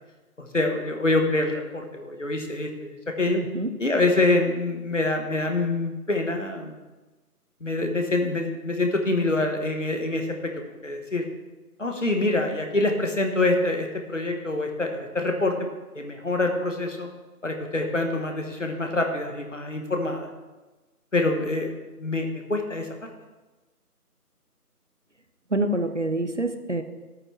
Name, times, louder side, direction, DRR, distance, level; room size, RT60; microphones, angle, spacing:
voice 1, 0.4-3.4 3.8-6.7 7.6-10.5 10.8-11.3 11.8-15.7 15.9-17.1 17.4-20.3 21.1-23.1, left 2 dB, 50° left, 4 dB, 1.6 m, -26 dB
voice 2, 3.3-3.7 25.5-26.8, right 1 dB, 50° right, 8 dB, 0.8 m, -26 dB
14.0 x 8.8 x 3.4 m, 1.2 s
figure-of-eight pair, 170°, 47 cm